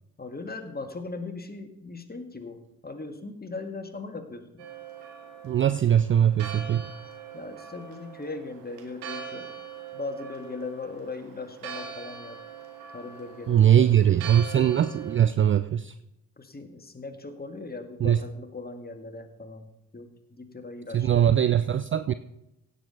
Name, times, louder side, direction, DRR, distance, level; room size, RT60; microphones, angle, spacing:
voice 1, 0.2-4.6 7.3-9.5 9.9-12.4 12.9-14.1 16.4-21.3, left 3 dB, 20° left, 6 dB, 1.7 m, -39 dB
Church bell, 4.6-15.2, right 6 dB, 70° right, 1.7 m, -42 dB
voice 2, 5.4-6.9 13.5-15.9 18.0-18.2 20.9-22.1, right 10 dB, 30° right, 13 dB, 0.4 m, -21 dB
16.5 x 6.9 x 3.9 m, 0.88 s
hypercardioid pair, 40°, 43 cm